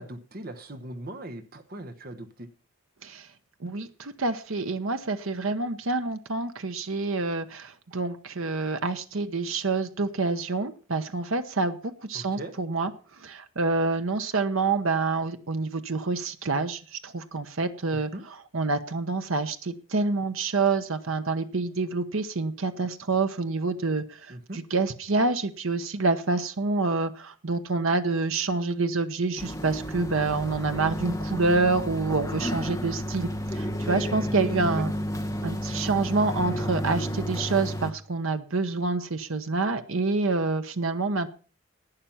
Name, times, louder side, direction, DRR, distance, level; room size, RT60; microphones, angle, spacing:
voice 1, 0.0-2.5 12.1-12.5 17.9-18.2 24.3-24.6 34.6-34.9, right 1 dB, 45° right, 7 dB, 1.1 m, -40 dB
voice 2, 3.6-11.8 12.1-12.9 13.2-18.1 18.5-34.9 35.4-41.4, right 3 dB, 70° right, 9 dB, 0.9 m, -27 dB
sound 1, 29.4-37.9, equal, 15° left, 1.1 m, -31 dB
11.5 x 9.0 x 5.7 m, 0.38 s
head